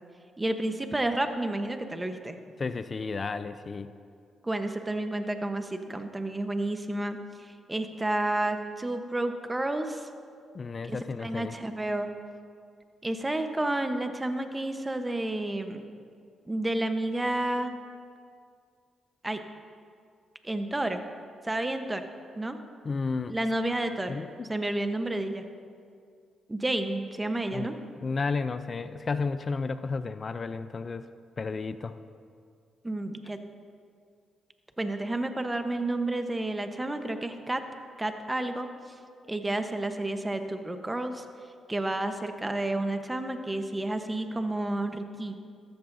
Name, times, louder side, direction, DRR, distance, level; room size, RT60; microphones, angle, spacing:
voice 1, 0.4-2.4 4.4-10.1 10.9-12.1 13.0-15.8 16.5-17.8 19.2-19.4 20.4-21.0 21.4-22.1 22.4-22.6 23.3-24.2 24.5-25.4 26.5-27.7 32.8-33.4 34.8-37.6 38.0-38.9 39.3-41.2 41.7-45.4, right 1 dB, 20° right, 7 dB, 1.0 m, -30 dB
voice 2, 2.6-3.9 10.5-11.5 22.8-23.4 24.1-24.5 27.5-27.7 28.0-31.1 31.4-32.0, left 4 dB, 45° left, 12 dB, 0.4 m, -32 dB
14.0 x 13.5 x 2.7 m, 2.2 s
supercardioid pair, 60°, 0 cm